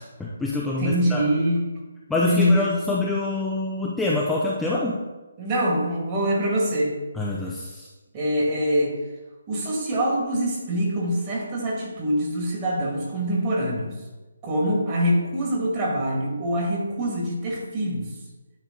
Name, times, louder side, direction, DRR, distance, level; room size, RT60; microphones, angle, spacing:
voice 1, 0.0-1.2 2.1-5.0 7.1-7.9, left 2 dB, 5° left, -5 dB, 0.6 m, -26 dB
voice 2, 0.8-1.7 2.3-2.6 5.4-7.0 8.1-8.9 9.5-14.0 14.4-18.1, equal, 25° right, -3 dB, 1.9 m, -24 dB
9.5 x 3.5 x 3.8 m, 1.2 s
figure-of-eight pair, 150°, 0 cm